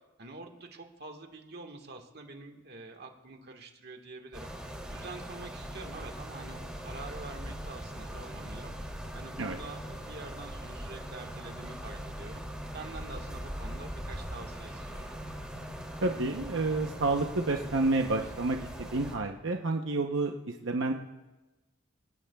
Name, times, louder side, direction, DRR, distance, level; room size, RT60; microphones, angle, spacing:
voice 1, 0.2-4.5 4.9-15.1, right 3 dB, 55° right, 3 dB, 1.5 m, -46 dB
sound 1, 4.3-19.2, equal, 5° right, 2.6 m, -41 dB
voice 2, 16.0-20.9, right 2 dB, 75° right, 3 dB, 0.8 m, -29 dB
27.0 x 17.5 x 2.3 m, 1.1 s
head